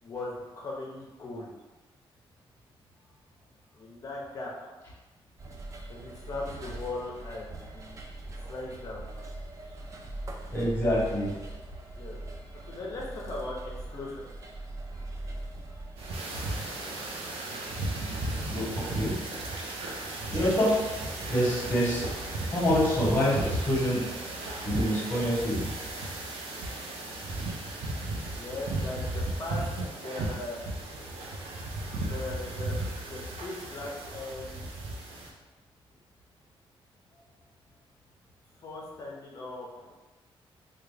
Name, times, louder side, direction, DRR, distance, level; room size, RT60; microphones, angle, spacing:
voice 1, 0.0-1.5 3.8-4.7 5.9-8.0 8.5-9.1 12.0-12.2 12.7-13.6 13.9-14.2 28.4-29.6 29.9-30.6 32.0-32.7 33.1-34.6 38.6-39.9, left 2 dB, 40° left, -3 dB, 0.5 m, -39 dB
sound 1, 5.4-16.2, right 2 dB, 35° right, 0.3 m, -41 dB
voice 2, 10.5-11.3 18.5-19.2 20.3-20.8 21.3-22.0 22.5-24.0 24.6-25.6, equal, 20° left, -4 dB, 0.9 m, -26 dB
sound 2, 16.0-35.3, right 2 dB, 90° right, 0.6 m, -35 dB
3.6 x 2.2 x 3.2 m, 1.2 s
wide cardioid pair, 170°, 10 cm